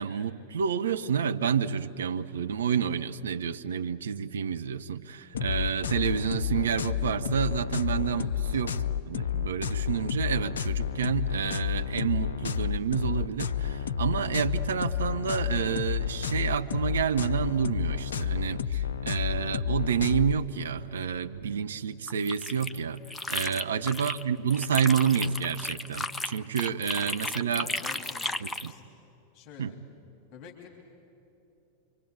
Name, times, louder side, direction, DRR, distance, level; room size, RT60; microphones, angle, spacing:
voice 1, 0.0-8.8 9.1-23.0 23.3-27.7 28.4-28.7 29.6-29.8, right 7 dB, 65° right, 8 dB, 0.9 m, -29 dB
sound 1, 5.3-20.4, left 9 dB, 65° left, 0.7 m, -30 dB
voice 2, 8.2-8.6 23.4-23.6 27.5-28.8 29.3-29.7 30.3-30.7, left 8 dB, 40° left, 2 dB, 3.2 m, -48 dB
sound 2, 22.1-24.2 24.5-28.7, left 2 dB, 10° left, 0.8 m, -34 dB
27.0 x 24.0 x 8.3 m, 2.8 s
figure-of-eight pair, 90°, 0 cm